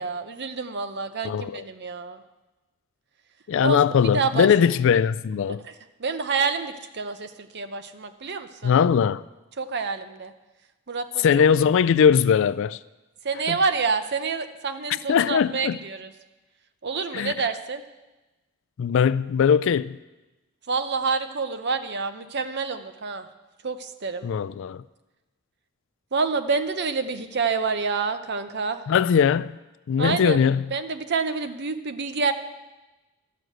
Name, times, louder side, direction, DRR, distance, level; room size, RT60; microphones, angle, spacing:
voice 1, 0.0-2.2 3.6-3.8 4.0-4.5 5.6-5.7 6.0-8.7 9.6-10.3 10.9-11.3 13.2-16.1 16.8-17.8 20.7-23.3 23.6-24.2 26.1-28.8 30.0-30.4 30.7-32.3, right 4 dB, 50° right, 0.7 m, -28 dB
voice 2, 1.2-1.6 3.5-5.6 8.6-9.2 11.2-12.8 13.5-13.6 15.1-15.8 17.1-17.3 18.8-20.0 24.2-24.8 28.9-29.5 29.9-30.6, left 7 dB, 55° left, 0.3 m, -20 dB
12.5 x 6.5 x 7.8 m
head